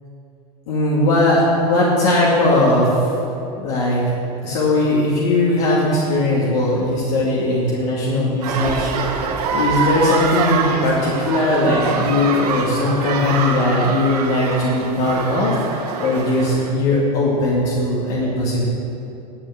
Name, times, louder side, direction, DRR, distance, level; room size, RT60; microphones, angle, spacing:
voice 1, 0.7-3.1 3.6-4.0 4.4-9.2 9.5-18.7, left 1 dB, 75° left, -6 dB, 2.3 m, -19 dB
sound 1, 8.4-16.7, right 5 dB, 90° right, 1.4 m, -24 dB
11.0 x 6.0 x 7.9 m, 2.8 s
supercardioid pair, 110°, 19 cm